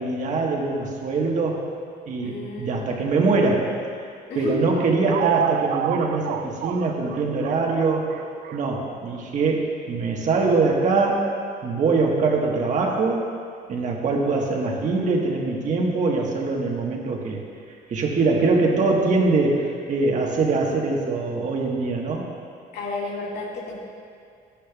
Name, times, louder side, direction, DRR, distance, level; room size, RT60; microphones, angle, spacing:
voice 1, 0.0-1.6 2.1-3.7 4.3-8.0 8.5-11.3 11.6-13.3 13.7-17.4 17.9-22.3, right 3 dB, 45° right, -1 dB, 1.4 m, -23 dB
voice 2, 2.2-2.8 4.3-4.6 22.7-23.8, left 3 dB, 80° left, -4 dB, 2.0 m, -32 dB
sound 1, 4.5-9.1, right 10 dB, 75° right, 0.5 m, -29 dB
11.5 x 10.0 x 2.4 m, 2.3 s
cardioid pair, 110°, 17 cm